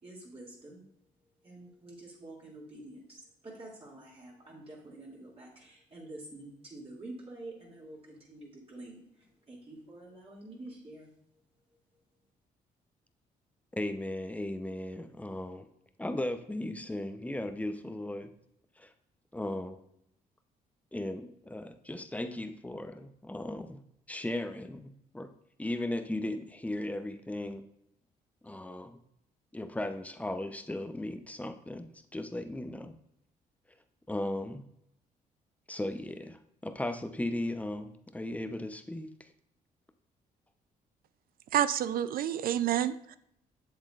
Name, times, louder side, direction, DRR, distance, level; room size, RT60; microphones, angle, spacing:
voice 1, 0.0-0.8 1.4-9.0 9.5-11.1, right 2 dB, 35° right, -5 dB, 2.5 m, -48 dB
voice 2, 13.7-15.7 16.0-18.3 18.8-18.9 19.3-19.8 20.9-23.8 24.1-25.3 25.6-27.6 28.4-29.0 29.5-32.9 34.1-34.6 35.7-39.3, left 1 dB, 10° left, 8 dB, 0.7 m, -36 dB
voice 3, 41.5-43.2, right 10 dB, 65° right, 14 dB, 0.4 m, -29 dB
7.5 x 7.2 x 2.5 m, 0.76 s
supercardioid pair, 70°, 16 cm